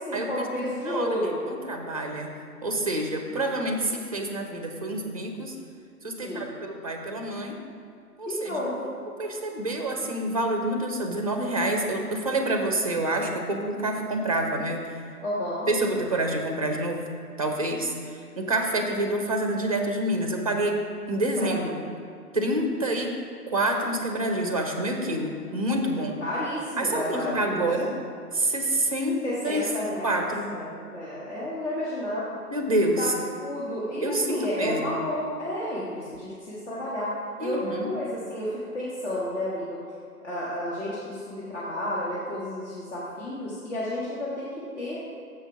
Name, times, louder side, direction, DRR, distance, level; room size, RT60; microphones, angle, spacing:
voice 1, 0.0-1.4 6.2-6.5 8.3-8.9 15.2-15.7 21.4-21.6 25.9-27.7 29.2-32.4 33.0-33.1 33.4-37.1 37.4-39.8 40.2-45.1, left 1 dB, 45° left, -8 dB, 1.8 m, -31 dB
voice 2, 0.6-1.2 1.5-2.3 2.6-5.5 6.0-7.6 8.2-8.5 9.2-14.9 15.7-17.0 17.4-20.8 21.1-21.8 22.3-23.1 23.5-26.1 26.8-27.9 28.3-29.7 30.0-30.5 32.5-33.1 34.0-34.8 37.4-37.9, right 1 dB, 25° right, 3 dB, 0.6 m, -27 dB
6.8 x 5.4 x 5.8 m, 2.4 s
figure-of-eight pair, 140°, 47 cm